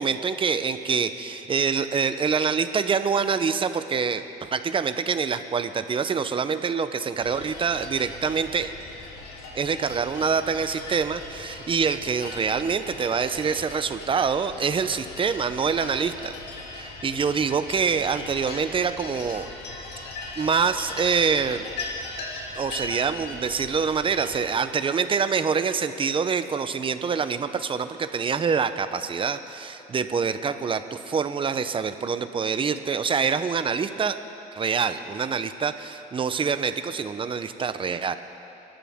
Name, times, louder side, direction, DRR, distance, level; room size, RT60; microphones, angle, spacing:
voice 1, 0.0-8.7 9.5-16.3 16.8-19.5 20.4-21.7 22.5-34.2 34.5-38.2, right 6 dB, 30° right, 11 dB, 0.8 m, -25 dB
sound 1, 7.2-24.4, left 3 dB, 75° left, 2.8 m, -39 dB
27.0 x 12.5 x 3.7 m, 2.8 s
cardioid pair, 110°, 17 cm